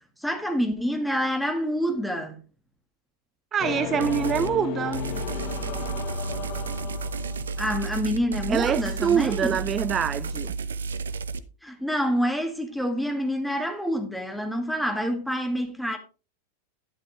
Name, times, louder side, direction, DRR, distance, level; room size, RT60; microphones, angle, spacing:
voice 1, 0.2-2.4 7.6-9.7 11.6-16.0, equal, ahead, 2.0 m, -27 dB
voice 2, 3.5-5.0 8.5-10.5, right 8 dB, 25° right, 0.4 m, -25 dB
sound 1, 3.6-7.7, left 11 dB, 40° left, 0.8 m, -34 dB
sound 2, 4.0-4.5 4.9-11.4, right 4 dB, 70° right, 0.7 m, -32 dB
12.0 x 10.5 x 3.1 m
figure-of-eight pair, 90°, 0 cm